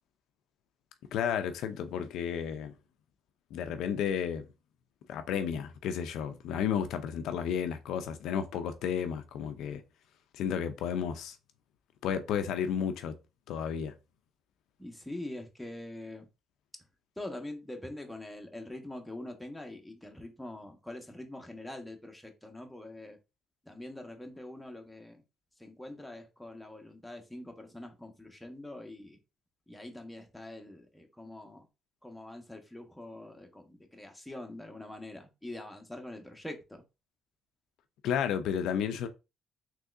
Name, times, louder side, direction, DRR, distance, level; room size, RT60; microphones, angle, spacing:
voice 1, 1.1-2.7 3.5-4.5 5.1-9.8 10.3-11.4 12.0-13.2 13.5-13.9 38.0-39.1, left 8 dB, 75° left, 0.4 m, -32 dB
voice 2, 14.8-16.3 17.2-23.2 23.6-25.2 25.6-29.2 29.7-31.7 32.0-36.8, left 1 dB, 5° left, 0.9 m, -44 dB
3.6 x 3.0 x 2.4 m
cardioid pair, 90°, 0 cm